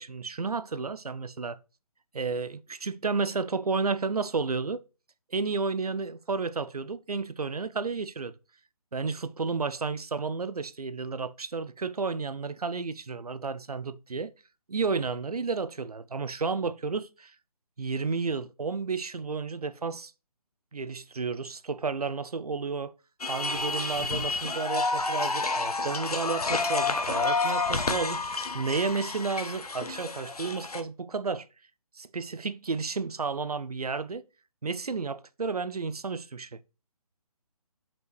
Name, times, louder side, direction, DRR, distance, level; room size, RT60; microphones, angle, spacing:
voice 1, 0.0-1.6 2.1-4.8 5.3-8.3 8.9-14.3 14.7-17.3 17.8-20.1 20.7-22.9 23.3-31.5 32.0-34.2 34.6-36.6, right 4 dB, 80° right, 0.7 m, -32 dB
sound 1, 23.2-30.8, left 3 dB, 80° left, 1.2 m, -30 dB
5.4 x 5.3 x 4.7 m
figure-of-eight pair, 150°, 19 cm